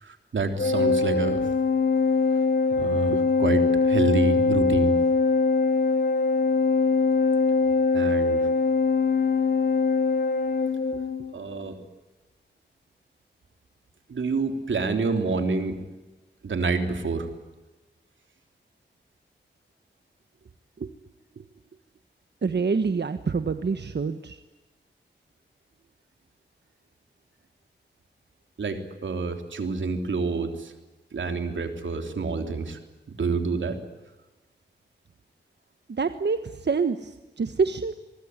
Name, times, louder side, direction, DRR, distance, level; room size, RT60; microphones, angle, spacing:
voice 1, 0.0-1.4 2.8-3.6 3.9-5.0 7.9-8.5 11.3-11.8 14.1-15.8 16.4-17.3 28.6-30.7 31.1-32.8 33.2-33.8, right 4 dB, 90° right, 6 dB, 3.4 m, -27 dB
Organ, 0.6-11.3, left 4 dB, 55° left, 0.9 m, -22 dB
voice 2, 22.4-24.4 35.9-37.9, right 5 dB, 65° right, 9 dB, 1.3 m, -26 dB
24.5 x 22.5 x 9.7 m, 1.1 s
cardioid pair, 50°, 19 cm